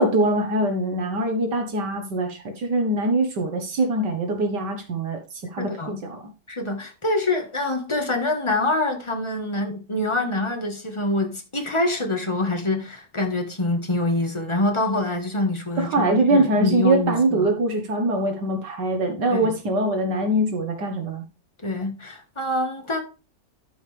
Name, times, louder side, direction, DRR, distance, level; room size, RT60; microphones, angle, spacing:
voice 1, 0.0-6.3 15.8-21.2, right 1 dB, 70° right, 1.9 m, -23 dB
voice 2, 5.6-6.0 6.5-17.5 19.3-19.5 21.6-23.0, left 2 dB, 20° left, 1.4 m, -25 dB
12.5 x 5.1 x 3.3 m
omnidirectional pair, 1.9 m